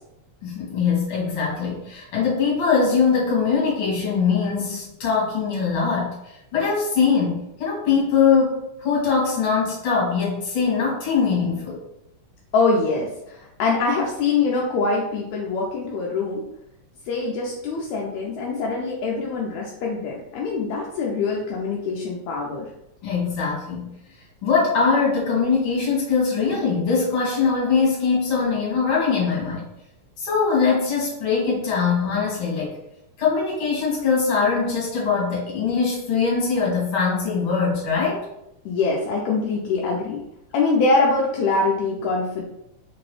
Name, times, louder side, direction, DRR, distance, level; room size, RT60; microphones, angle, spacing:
voice 1, 0.4-11.8 23.0-23.9 24.4-29.6 30.2-32.7 33.2-38.3, left 5 dB, 50° left, -5 dB, 2.1 m, -22 dB
voice 2, 12.5-16.5 17.1-22.7 38.7-40.2 40.5-42.4, left 3 dB, 80° left, -2 dB, 1.9 m, -23 dB
4.5 x 2.9 x 3.1 m, 0.85 s
omnidirectional pair, 3.3 m